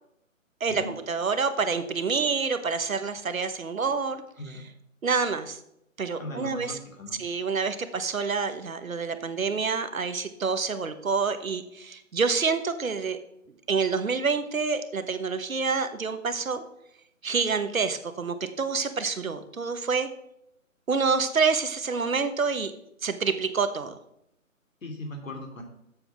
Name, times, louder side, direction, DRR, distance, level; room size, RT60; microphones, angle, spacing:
voice 1, 0.6-4.2 5.0-5.6 6.0-6.8 7.2-13.2 13.7-16.6 17.2-20.1 20.9-22.7 23.0-24.0, right 5 dB, 75° right, 10 dB, 1.2 m, -27 dB
voice 2, 6.2-7.2 24.8-25.6, left 1 dB, 70° left, 2 dB, 2.8 m, -38 dB
7.8 x 7.0 x 5.8 m, 0.79 s
figure-of-eight pair, 145°, 41 cm